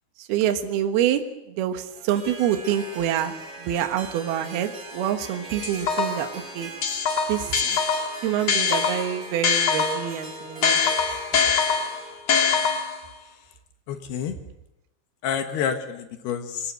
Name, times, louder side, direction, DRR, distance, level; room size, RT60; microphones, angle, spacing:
voice 1, 0.2-6.7 7.3-7.8 8.2-10.8, right 10 dB, 65° right, 7 dB, 3.0 m, -26 dB
Harp, 1.8-12.3, right 2 dB, 20° right, 5.3 m, -40 dB
sound 1, 5.6-6.3 6.8-10.2 10.6-13.1, left 6 dB, 50° left, 2.2 m, -23 dB
voice 2, 13.9-14.3 15.2-16.7, left 7 dB, 70° left, 7 dB, 2.9 m, -28 dB
24.0 x 18.0 x 7.8 m, 0.92 s
omnidirectional pair, 5.4 m